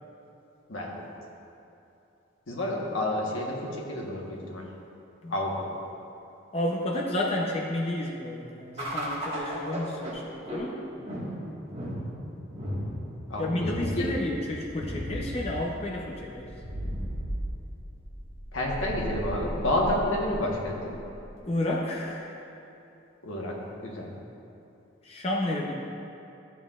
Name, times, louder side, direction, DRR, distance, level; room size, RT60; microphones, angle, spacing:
voice 1, 0.7-1.1 2.5-4.7 5.3-5.8 13.3-14.1 18.5-20.9 23.2-24.1, left 1 dB, 85° left, -2 dB, 1.3 m, -30 dB
voice 2, 6.5-10.8 13.4-16.5 21.5-22.4 25.0-25.7, left 1 dB, 30° left, -3 dB, 0.7 m, -31 dB
sound 1, 8.8-21.4, equal, 30° right, 1.7 m, -36 dB
13.5 x 7.2 x 2.5 m, 2.8 s
head